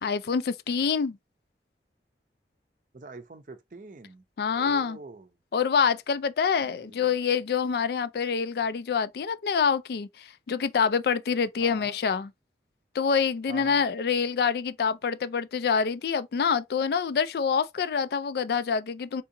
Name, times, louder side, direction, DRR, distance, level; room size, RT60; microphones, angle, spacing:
voice 1, 0.0-1.2 4.4-5.0 5.5-12.3 12.9-19.2, left 6 dB, 60° left, 0.3 m, -26 dB
voice 2, 2.9-4.2 4.5-5.3 6.6-7.3 11.6-12.0 13.5-13.8, right 3 dB, 45° right, 0.5 m, -45 dB
3.7 x 2.7 x 2.6 m
head